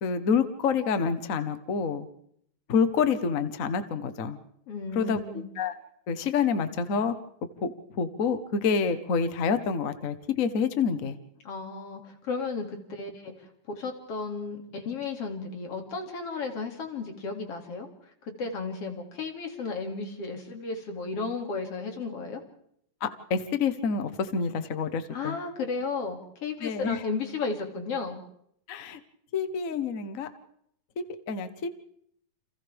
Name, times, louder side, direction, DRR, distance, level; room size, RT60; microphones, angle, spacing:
voice 1, 0.0-2.1 2.7-4.4 4.9-5.7 6.1-7.1 7.6-11.2 23.0-25.4 26.6-27.0 28.7-29.0 29.3-30.3 31.0-31.7, left 5 dB, 75° left, 10 dB, 0.7 m, -28 dB
voice 2, 4.7-5.5 11.4-13.5 13.8-17.9 18.2-22.4 25.1-28.2, left 4 dB, 55° left, 3 dB, 3.4 m, -34 dB
29.5 x 27.5 x 3.5 m, 0.71 s
omnidirectional pair, 3.4 m